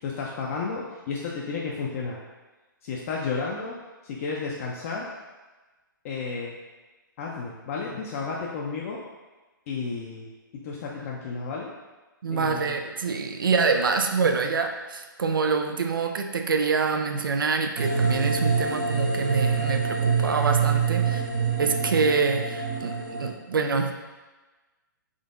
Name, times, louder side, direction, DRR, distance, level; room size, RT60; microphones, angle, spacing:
voice 1, 0.0-2.2 2.8-3.8 4.0-5.1 6.0-6.5 7.2-9.0 9.7-10.3 10.5-11.7 12.3-12.8, left 4 dB, 40° left, -3 dB, 0.5 m, -32 dB
voice 2, 12.2-21.2 21.6-23.9, right 4 dB, 75° right, 5 dB, 0.4 m, -26 dB
sound 1, 17.8-23.3, right 5 dB, 50° right, 0.7 m, -25 dB
3.7 x 3.3 x 2.5 m, 1.2 s
figure-of-eight pair, 125°, 11 cm